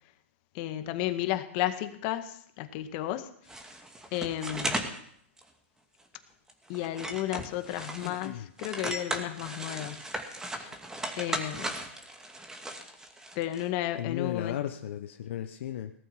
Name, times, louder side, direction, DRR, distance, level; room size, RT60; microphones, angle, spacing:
voice 1, 0.5-3.3 4.1-4.9 6.7-8.3 8.6-10.1 10.5-10.7 11.2-11.8 13.4-14.6, left 13 dB, 45° left, 9 dB, 1.8 m, -33 dB
sound 1, 3.5-5.0 5.4-5.5 6.0-6.1 6.5-8.3 8.6-13.7, right 1 dB, 10° right, 2.3 m, -37 dB
voice 2, 8.0-8.5 14.0-15.9, left 11 dB, 65° left, 6 dB, 1.1 m, -35 dB
18.5 x 13.0 x 5.9 m, 0.65 s
hypercardioid pair, 120°, 7 cm